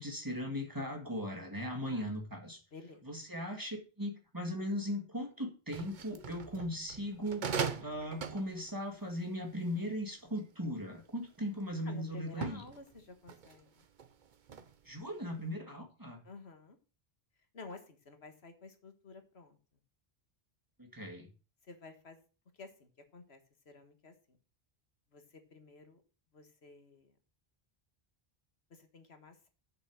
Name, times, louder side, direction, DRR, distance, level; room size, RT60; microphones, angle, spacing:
voice 1, 0.0-2.6 3.1-7.5 7.8-12.6 14.9-16.2 20.8-21.3, equal, 20° right, 3 dB, 1.9 m, -38 dB
voice 2, 2.7-3.0 11.8-13.9 16.2-16.8 17.5-19.6 21.6-22.3 22.5-24.4 25.1-26.0 26.3-27.2 28.7-29.5, left 3 dB, 85° left, 7 dB, 1.8 m, -52 dB
sound 1, 5.7-10.7 11.3-11.7 12.3-15.0 15.3-15.5, right 6 dB, 50° right, 0.9 m, -41 dB
8.1 x 6.7 x 6.3 m, 0.35 s
omnidirectional pair, 1.1 m